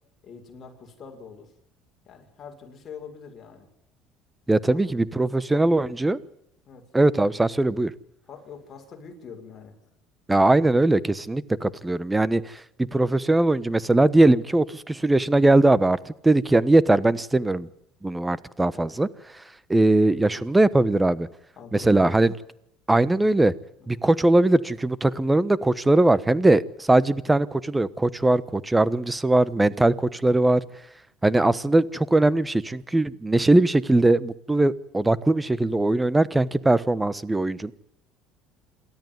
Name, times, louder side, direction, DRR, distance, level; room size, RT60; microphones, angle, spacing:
voice 1, 0.2-1.5 2.0-3.7 4.7-4.8 5.3-5.8 6.7-6.9 8.3-9.8 18.7-18.9 21.6-22.3 23.8-24.1, left 6 dB, 35° left, 3 dB, 6.5 m, -44 dB
voice 2, 4.5-6.2 6.9-7.9 10.3-12.6 12.9-17.7 18.0-19.1 19.7-21.3 21.7-22.3 22.9-23.5 23.9-30.6 31.2-37.7, right 2 dB, 10° right, 18 dB, 1.2 m, -20 dB
27.5 x 13.5 x 9.6 m, 0.80 s
supercardioid pair, 110°, 0 cm